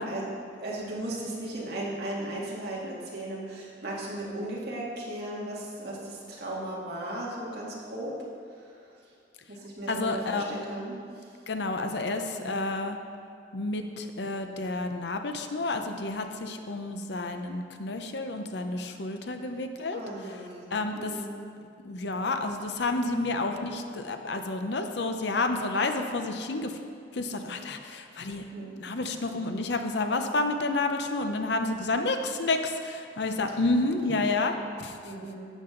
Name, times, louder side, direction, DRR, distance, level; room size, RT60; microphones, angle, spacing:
voice 1, 0.0-8.1 8.6-8.7 9.5-11.0 12.4-12.5 19.9-21.4 23.0-23.2 28.5-28.7 34.0-34.1 35.0-35.5, right 1 dB, 60° right, -5 dB, 2.2 m, -36 dB
voice 2, 9.9-10.5 11.5-13.0 13.5-20.4 20.7-21.2 21.8-26.8 27.1-28.5 28.8-35.0, left 2 dB, 65° left, 6 dB, 0.7 m, -30 dB
11.5 x 8.3 x 3.9 m, 2.4 s
head